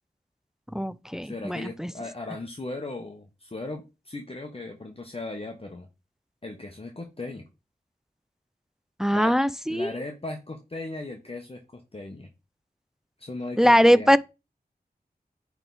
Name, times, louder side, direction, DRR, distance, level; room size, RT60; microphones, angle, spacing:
voice 1, 0.7-1.9 9.0-9.9 13.6-14.2, equal, 5° right, 0.4 m, -21 dB
voice 2, 1.2-5.9 6.4-7.4 9.1-9.4 9.7-12.3 13.2-14.1, left 2 dB, 35° left, 1.0 m, -37 dB
8.9 x 3.5 x 4.0 m
wide cardioid pair, 60°, 17 cm